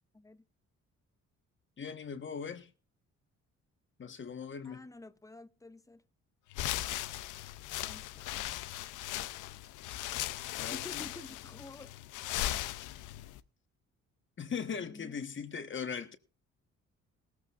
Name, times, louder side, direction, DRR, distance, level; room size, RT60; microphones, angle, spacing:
voice 1, 1.8-2.7 4.0-4.8 10.6-11.0 14.4-16.2, left 6 dB, 40° left, 1.4 m, -39 dB
voice 2, 4.6-6.0 7.8-8.4 10.7-11.9 14.8-15.3, left 2 dB, 10° left, 0.8 m, -50 dB
sound 1, 6.5-13.4, left 15 dB, 90° left, 0.7 m, -38 dB
17.5 x 14.5 x 2.5 m
cardioid pair, 90°, 30 cm